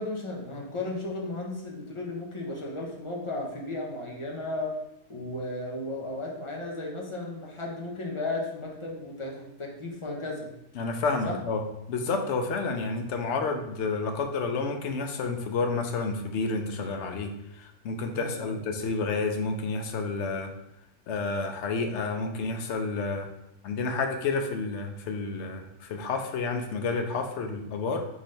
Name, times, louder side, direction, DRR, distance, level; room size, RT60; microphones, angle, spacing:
voice 1, 0.0-4.7 5.1-10.5 11.2-11.4 12.0-12.1 18.1-18.6, left 2 dB, 30° left, -2 dB, 0.8 m, -35 dB
voice 2, 10.7-11.6 11.9-20.5 21.1-23.3 23.6-28.1, left 4 dB, 75° left, 5 dB, 0.9 m, -30 dB
4.0 x 3.7 x 3.2 m, 0.82 s
omnidirectional pair, 1.2 m